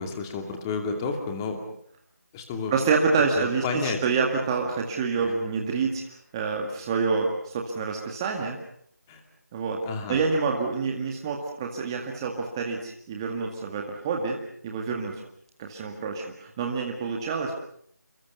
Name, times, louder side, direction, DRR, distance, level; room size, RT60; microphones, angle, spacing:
voice 1, 0.0-1.6 2.3-2.8 3.4-4.0 5.2-5.3 9.1-9.2 9.8-10.2, left 4 dB, 10° left, 4 dB, 2.5 m, -31 dB
voice 2, 2.7-8.6 9.5-9.8 10.1-15.2 15.6-17.5, right 4 dB, 15° right, 1 dB, 1.9 m, -27 dB
28.5 x 23.5 x 6.9 m, 0.66 s
figure-of-eight pair, 165°, 9 cm